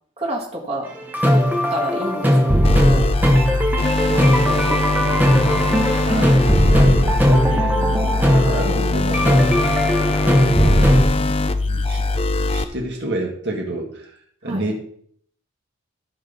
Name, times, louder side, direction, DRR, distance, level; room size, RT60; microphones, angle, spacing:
voice 1, 0.2-0.9 1.3-1.4 1.7-3.1 4.1-5.2 5.5-5.7 14.4-14.6, right 1 dB, 30° right, -3 dB, 1.8 m, -30 dB
sound 1, 1.0-11.1, equal, 10° right, 1.1 m, -18 dB
sound 2, 2.6-12.6, left 3 dB, 30° left, 0.5 m, -21 dB
voice 2, 6.0-6.4 6.7-9.4 10.0-14.1 14.4-14.8, right 1 dB, 55° right, 0 dB, 2.0 m, -29 dB
13.5 x 5.3 x 4.1 m, 0.63 s
head